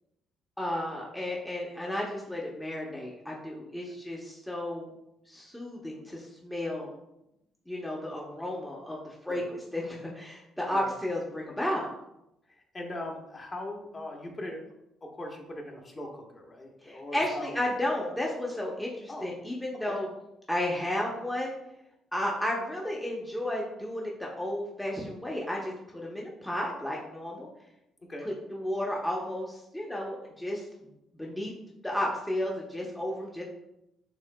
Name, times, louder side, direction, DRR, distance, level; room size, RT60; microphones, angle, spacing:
voice 1, 0.6-4.9 5.3-6.9 7.7-11.9 16.8-20.1 20.5-21.5 22.1-27.5 28.2-30.7 31.1-31.5 31.8-33.4, left 1 dB, 5° left, -3 dB, 0.8 m, -33 dB
voice 2, 12.5-14.6 15.0-17.6 19.1-19.3 19.9-20.0 28.1-28.3, left 1 dB, 30° left, 0 dB, 1.1 m, -40 dB
6.4 x 3.1 x 2.2 m, 0.86 s
supercardioid pair, 75°, 0 cm